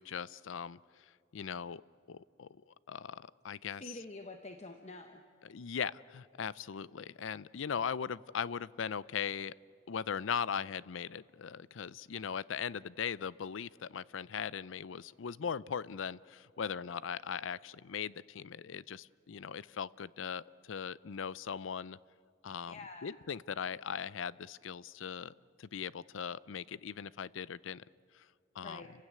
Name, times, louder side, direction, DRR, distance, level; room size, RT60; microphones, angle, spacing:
voice 1, 0.0-1.8 2.1-3.9 5.4-9.5 9.9-22.0 22.4-22.7 23.0-25.3 25.6-27.8 28.1-28.3 28.5-28.8, left 7 dB, 75° left, 20 dB, 0.5 m, -39 dB
voice 2, 3.8-5.2 22.7-23.1 28.6-28.9, left 2 dB, 35° left, 5 dB, 1.0 m, -47 dB
29.0 x 16.0 x 9.6 m, 2.4 s
head